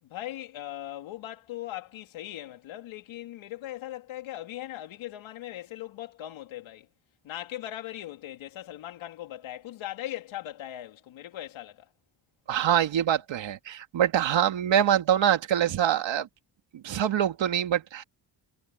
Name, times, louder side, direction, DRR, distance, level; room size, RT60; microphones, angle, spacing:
voice 1, 0.0-6.9 7.2-11.9, left 13 dB, 90° left, 3.2 m, -39 dB
voice 2, 12.5-16.3 16.7-18.0, right 10 dB, 70° right, 2.7 m, -24 dB
cardioid pair, 100°, 46 cm